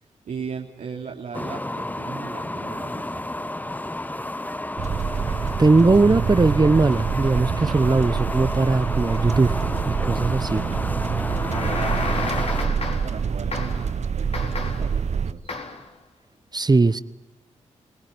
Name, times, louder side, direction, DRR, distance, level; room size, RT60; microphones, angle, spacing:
voice 1, 0.2-3.2 10.2-10.8 11.4-15.5, right 5 dB, 75° right, -2 dB, 3.1 m, -37 dB
sound 1, 1.3-12.7, left 1 dB, 10° left, 0.9 m, -32 dB
sound 2, 4.8-15.3, right 6 dB, 60° right, 1.0 m, -26 dB
voice 2, 5.2-9.6 9.8-10.6 16.5-17.0, right 3 dB, 30° right, 15 dB, 1.0 m, -19 dB
sound 3, 11.2-13.2 13.5-13.9 14.3-14.9 15.5-15.9, left 3 dB, 50° left, 4.7 m, -31 dB
29.5 x 18.5 x 9.6 m, 1.0 s
supercardioid pair, 45°, 13 cm